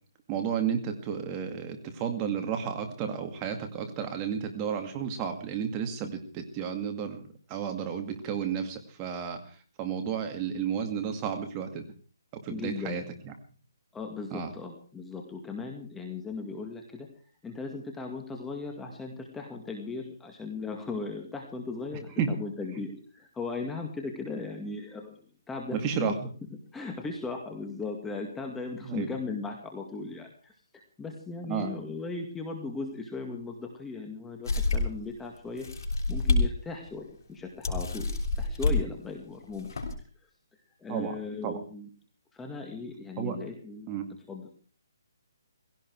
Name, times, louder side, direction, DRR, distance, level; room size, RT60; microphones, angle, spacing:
voice 1, 0.3-9.4 9.8-11.8 12.4-13.3 14.3-14.5 22.2-22.3 25.8-26.3 28.8-29.1 31.5-31.7 40.9-41.2 41.4-41.6 43.2-43.4 43.9-44.0, right 7 dB, 20° right, 5 dB, 2.2 m, -32 dB
voice 2, 12.5-13.1 13.9-17.1 17.4-26.1 26.7-30.5 31.0-35.7 36.1-38.1 38.4-39.7 40.8-41.9 42.3-43.9 44.3-44.5, left 4 dB, 5° left, 2 dB, 2.0 m, -37 dB
sound 1, 34.5-35.0 35.6-36.5 36.9-37.0 37.6-38.8 39.5-39.9, left 3 dB, 60° left, 5.9 m, -27 dB
18.0 x 17.0 x 4.7 m, 0.40 s
hypercardioid pair, 165°, 2 cm